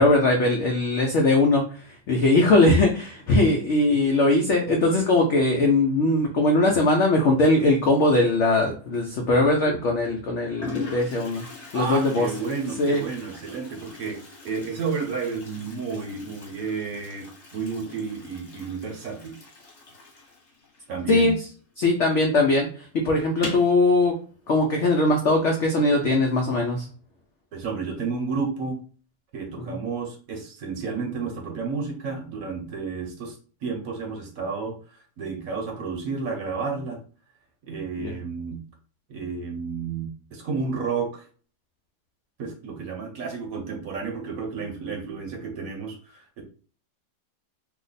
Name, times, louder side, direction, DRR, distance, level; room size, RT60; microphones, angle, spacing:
voice 1, 0.0-11.4 11.7-12.3 12.8-13.0 21.1-21.5 21.8-24.1 24.5-26.9 29.6-29.8 38.0-38.1, left 2 dB, 85° left, 1 dB, 0.6 m, -20 dB
Toilet flush, 9.1-9.5 10.2-10.3 10.6-21.9 22.1-22.2 22.5-22.6 23.3-23.8, left 4 dB, 45° left, 1.2 m, -41 dB
voice 2, 11.7-19.3 20.9-21.3 27.5-28.8 29.3-37.0 37.6-38.6 39.1-41.3 42.4-46.4, right 5 dB, 60° right, 2 dB, 1.0 m, -31 dB
2.9 x 2.1 x 3.9 m, 0.40 s
omnidirectional pair, 1.9 m